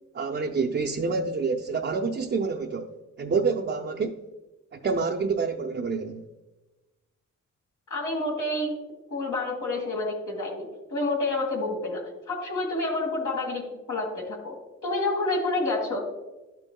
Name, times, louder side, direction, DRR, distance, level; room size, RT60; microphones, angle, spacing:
voice 1, 0.1-2.9 3.2-4.1 4.7-6.2, right 4 dB, 40° right, 1 dB, 0.6 m, -27 dB
voice 2, 7.9-8.7 9.1-14.6 14.8-16.1, left 2 dB, 75° left, -2 dB, 2.0 m, -29 dB
11.5 x 5.3 x 2.3 m, 1.1 s
cardioid pair, 60°, 31 cm